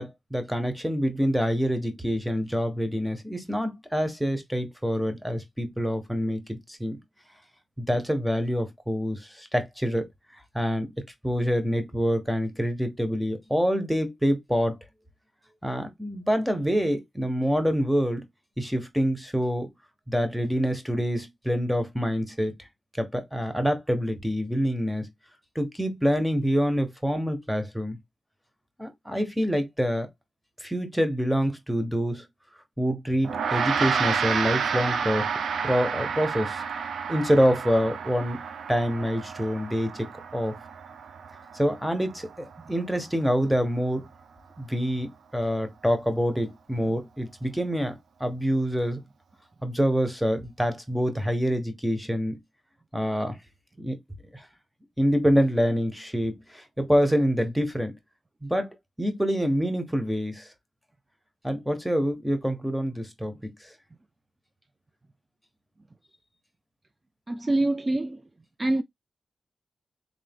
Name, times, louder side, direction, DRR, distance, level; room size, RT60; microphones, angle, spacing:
voice 1, 0.0-7.0 7.8-10.1 10.5-10.9 11.2-14.8 15.6-18.2 18.6-19.7 20.1-22.5 23.0-25.1 25.5-28.0 28.8-30.1 30.6-32.2 32.8-35.3 35.6-36.6 37.1-40.6 41.5-44.1 44.6-49.0 49.6-52.4 52.9-53.4 53.8-54.0 54.3-54.5 55.0-57.9 58.4-60.5 61.4-63.5, equal, 5° right, 1.5 m, -26 dB
Gong, 33.2-42.9, right 6 dB, 90° right, 0.7 m, -30 dB
voice 2, 67.3-68.2 68.6-68.8, right 2 dB, 35° right, 0.4 m, -25 dB
3.7 x 3.2 x 3.7 m
cardioid pair, 55°, 0 cm